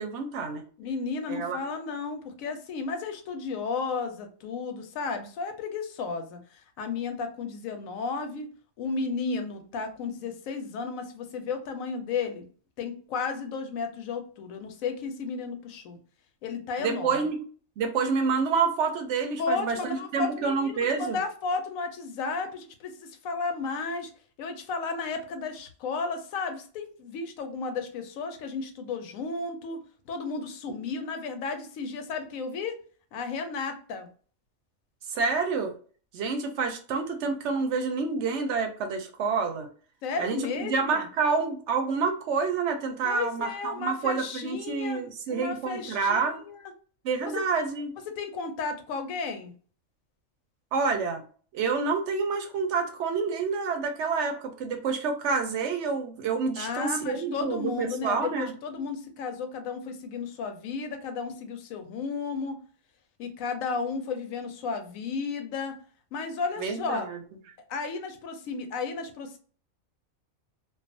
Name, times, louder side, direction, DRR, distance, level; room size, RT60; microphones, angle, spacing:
voice 1, 0.0-0.6 1.3-1.6 16.8-17.4 17.8-21.2 35.1-35.7 36.1-39.7 40.2-46.4 47.0-47.9 50.7-51.2 51.5-58.5 66.6-67.2, right 5 dB, 65° right, 6 dB, 0.8 m, -28 dB
voice 2, 0.8-8.5 8.8-12.5 12.8-16.0 16.4-17.2 19.4-24.1 24.4-29.8 30.1-32.8 33.1-34.1 40.0-41.0 43.0-45.0 45.3-46.7 47.2-47.4 48.1-49.5 56.6-62.6 63.2-65.8 66.1-67.1 67.7-69.4, left 4 dB, 85° left, 6 dB, 1.0 m, -33 dB
2.4 x 2.3 x 2.5 m, 0.42 s
omnidirectional pair, 1.4 m